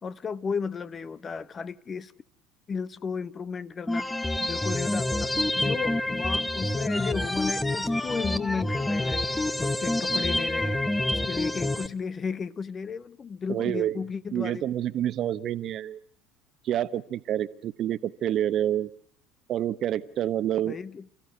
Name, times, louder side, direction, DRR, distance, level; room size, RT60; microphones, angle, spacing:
voice 1, 0.0-2.1 2.7-4.1 4.4-9.3 9.6-10.8 11.1-14.7 20.6-21.1, left 5 dB, 30° left, 0.9 m, -34 dB
sound 1, 3.9-11.9, left 1 dB, 10° left, 1.1 m, -27 dB
voice 2, 13.5-14.0 14.3-16.0 16.6-18.9 19.5-20.8, right 11 dB, 50° right, 1.0 m, -28 dB
30.0 x 15.0 x 8.1 m
hypercardioid pair, 65°, 0 cm